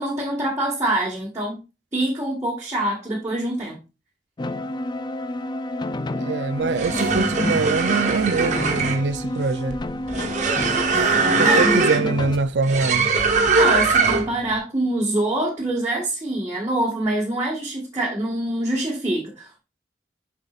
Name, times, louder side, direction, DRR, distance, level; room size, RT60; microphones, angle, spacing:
voice 1, 0.0-1.6 1.9-3.8 11.2-11.8 13.6-19.6, right 1 dB, 15° right, 1.7 m, -25 dB
sound 1, 4.4-12.4, left 1 dB, 25° left, 0.4 m, -29 dB
voice 2, 6.2-9.8 11.1-13.1, right 4 dB, 90° right, 0.6 m, -24 dB
sound 2, 6.6-14.4, right 4 dB, 45° right, 1.3 m, -21 dB
7.6 x 5.5 x 2.4 m
head